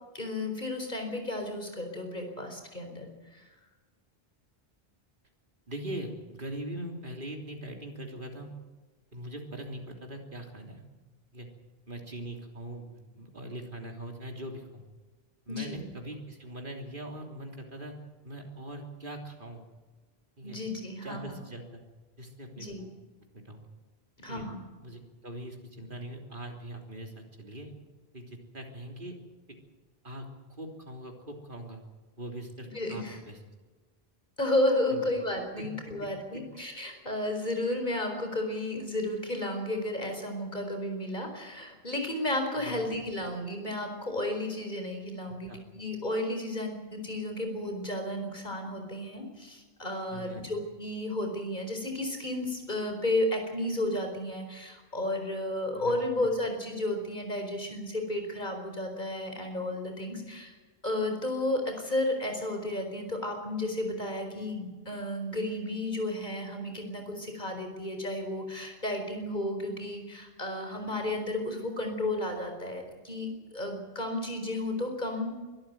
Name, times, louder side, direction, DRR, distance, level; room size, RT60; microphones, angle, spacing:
voice 1, 0.1-3.4 15.5-15.9 20.4-21.3 22.6-22.9 24.2-24.6 32.7-33.2 34.4-60.5 60.8-75.5, left 1 dB, 45° left, 4 dB, 4.7 m, -33 dB
voice 2, 5.7-8.5 9.1-10.8 11.3-11.5 11.9-14.8 15.5-17.9 18.2-19.7 20.4-20.6 21.0-21.8 22.2-22.9 23.3-23.7 24.3-24.5 24.8-27.7 28.1-29.1 30.0-31.8 32.2-33.4 34.9-35.1 42.6-42.9 45.5-45.6 50.1-50.4 55.8-56.1, right 1 dB, 55° right, 2 dB, 3.6 m, -41 dB
23.5 x 13.0 x 9.5 m, 1.3 s
omnidirectional pair, 1.0 m